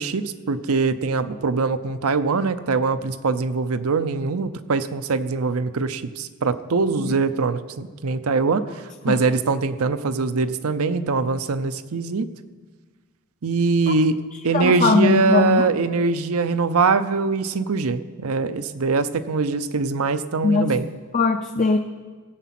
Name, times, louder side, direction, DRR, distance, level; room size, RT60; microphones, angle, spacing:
voice 1, 0.0-8.6 9.0-12.3 13.4-20.9, right 4 dB, 85° right, 11 dB, 0.6 m, -22 dB
voice 2, 14.5-15.6 20.4-20.7 21.1-21.8, left 4 dB, 35° left, 5 dB, 0.5 m, -20 dB
16.0 x 8.2 x 5.9 m, 1.4 s
head